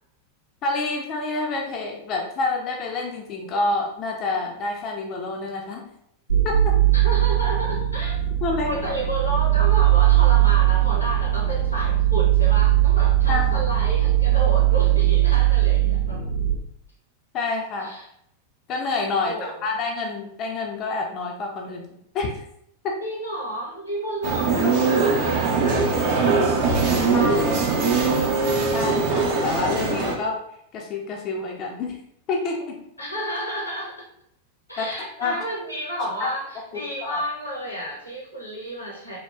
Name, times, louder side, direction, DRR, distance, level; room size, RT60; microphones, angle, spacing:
voice 1, 0.6-5.9 6.4-6.8 8.4-8.7 13.3-13.5 17.3-17.9 18.7-22.4 22.8-23.0 27.1-27.9 28.7-30.4 30.7-32.0 32.3-32.8 34.8-35.4 36.0-36.3 36.7-36.8 37.1-37.2, left 3 dB, 35° left, 1 dB, 0.4 m, -28 dB
sound 1, 6.3-16.5, right 14 dB, 80° right, 0.9 m, -19 dB
voice 2, 6.9-8.2 8.6-16.2 17.8-18.1 19.2-19.7 23.0-28.3 33.0-33.9 34.7-39.2, right 1 dB, 90° left, -3 dB, 0.9 m, -32 dB
sound 2, 24.2-30.1, right 4 dB, 45° right, 0.5 m, -21 dB
3.4 x 2.0 x 2.3 m, 0.73 s
figure-of-eight pair, 90°, 0 cm